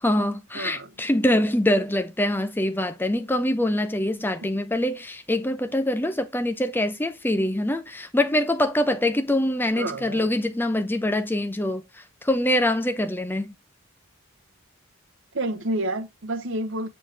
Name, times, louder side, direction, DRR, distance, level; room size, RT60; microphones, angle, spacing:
voice 1, 0.0-11.8 12.2-13.5, left 1 dB, 10° left, 0.7 m, -24 dB
voice 2, 0.5-0.9 4.4-4.5 9.7-10.3 15.3-16.9, right 2 dB, 65° right, 1.0 m, -29 dB
7.4 x 4.4 x 3.4 m
head